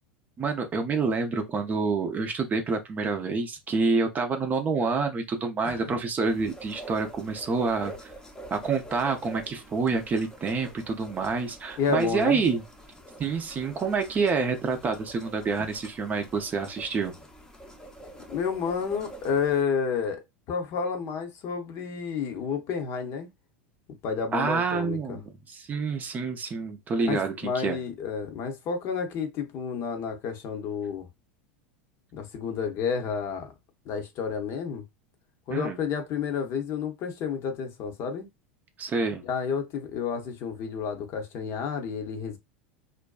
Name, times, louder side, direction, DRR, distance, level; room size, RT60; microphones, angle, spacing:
voice 1, 0.4-8.1 8.5-12.6 13.2-17.1 24.3-27.8 35.5-35.8 38.8-39.2, right 4 dB, 25° right, 0.6 m, -27 dB
sound 1, 6.2-19.6, right 1 dB, 10° left, 0.7 m, -46 dB
voice 2, 11.8-12.4 18.3-20.2 20.5-23.3 24.0-25.2 27.1-31.1 32.1-33.5 33.9-34.8 35.5-38.3 39.2-42.4, left 6 dB, 45° left, 0.8 m, -30 dB
2.5 x 2.2 x 2.3 m
hypercardioid pair, 85°, 6 cm